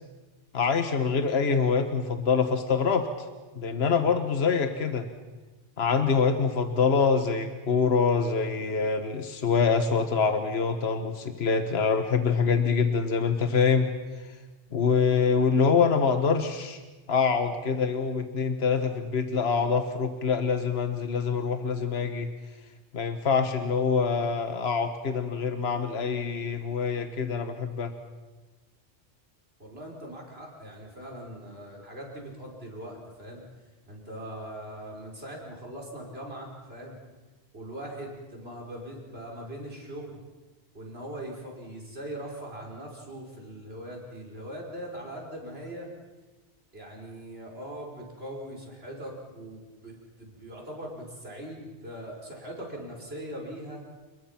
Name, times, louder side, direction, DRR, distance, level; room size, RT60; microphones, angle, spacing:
voice 1, 0.5-3.3 3.5-5.1 5.8-13.9 14.2-14.4 14.7-16.8 17.1-22.3 22.9-27.9, left 5 dB, 70° left, 8 dB, 1.5 m, -25 dB
voice 2, 29.6-33.4 33.9-37.0 37.5-40.2 40.7-45.9 46.7-53.8, right 1 dB, 65° right, -1 dB, 5.6 m, -41 dB
29.5 x 21.0 x 5.9 m, 1.2 s
omnidirectional pair, 1.1 m